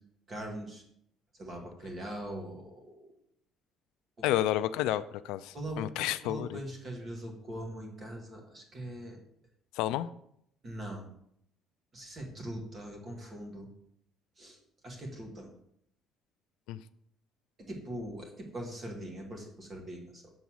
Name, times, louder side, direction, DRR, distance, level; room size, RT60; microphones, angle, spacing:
voice 1, 0.3-0.8 1.4-3.1 4.2-4.3 5.5-9.2 10.6-11.0 11.9-13.7 14.4-14.6 14.8-15.5 17.6-20.3, right 1 dB, 25° right, 1 dB, 1.7 m, -41 dB
voice 2, 4.2-6.6 9.7-10.1 16.7-16.8, left 13 dB, 80° left, 13 dB, 0.3 m, -31 dB
7.2 x 4.0 x 6.3 m, 0.71 s
cardioid pair, 175°, 0 cm